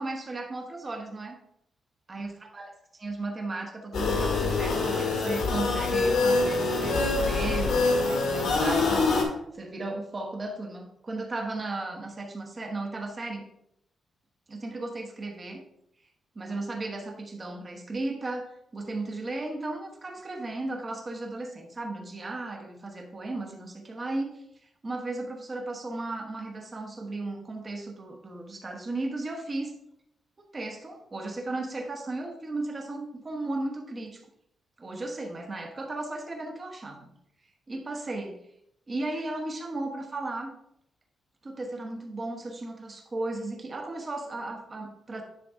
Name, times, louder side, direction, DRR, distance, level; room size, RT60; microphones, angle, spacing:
voice 1, 0.0-1.4 2.1-2.7 3.0-13.5 14.5-15.6 16.3-24.4 24.8-29.7 30.5-34.2 34.8-37.1 37.7-38.4 38.9-40.5 41.4-45.2, right 2 dB, 25° right, 3 dB, 1.0 m, -35 dB
sound 1, 3.9-9.2, left 3 dB, 70° left, 1.8 m, -25 dB
10.0 x 3.9 x 3.5 m, 0.76 s
wide cardioid pair, 175°, 0 cm